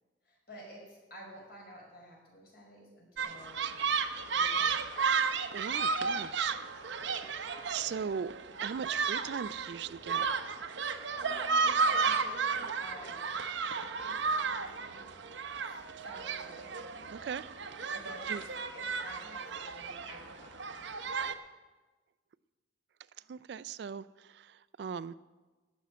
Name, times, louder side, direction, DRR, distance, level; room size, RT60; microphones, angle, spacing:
voice 1, 0.3-3.8 4.3-5.2 11.1-13.2 14.0-14.5 14.8-15.0 15.6-16.7 17.9-20.6, equal, 55° left, -2 dB, 5.3 m, -51 dB
sound 1, 3.2-21.3, right 5 dB, 85° right, 0.8 m, -33 dB
voice 2, 5.5-6.6 7.7-8.3 8.6-10.6 17.1-17.5 18.3-18.4 23.3-25.1, right 7 dB, 65° right, 16 dB, 0.3 m, -39 dB
15.0 x 6.2 x 9.3 m, 1.3 s
head